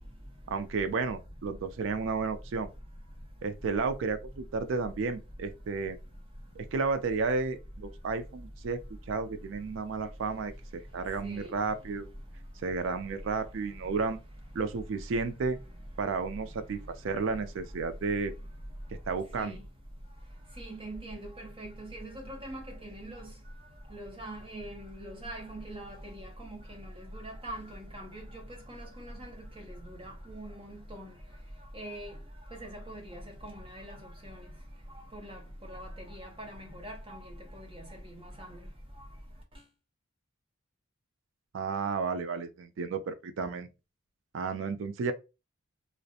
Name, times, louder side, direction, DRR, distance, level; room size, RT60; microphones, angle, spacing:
voice 1, 0.5-2.7 3.4-6.0 6.6-8.8 9.1-12.1 12.6-14.2 14.5-15.6 16.0-18.3 19.1-19.6 41.5-43.7 44.3-45.1, right 4 dB, 60° right, 0.3 m, -32 dB
voice 2, 20.6-23.3 23.9-28.2 28.7-29.3 29.7-31.1 31.7-32.1 32.6-34.0 34.2-34.5 35.1-38.6, right 1 dB, 25° right, 0.6 m, -43 dB
2.4 x 2.0 x 2.7 m
head